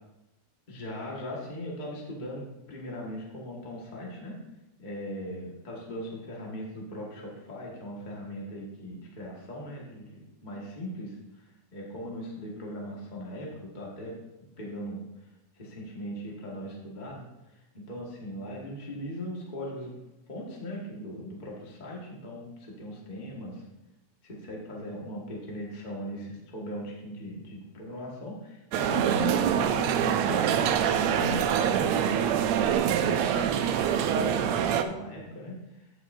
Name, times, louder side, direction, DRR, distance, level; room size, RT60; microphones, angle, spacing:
voice 1, 0.7-4.4 4.8-14.2 14.6-15.3 15.5-19.9 20.3-23.7 24.2-35.9, left 1 dB, 30° left, -3 dB, 0.8 m, -39 dB
sound 1, 28.7-34.8, right 9 dB, 85° right, 1.6 m, -25 dB
16.0 x 6.0 x 2.6 m, 0.98 s
omnidirectional pair, 3.6 m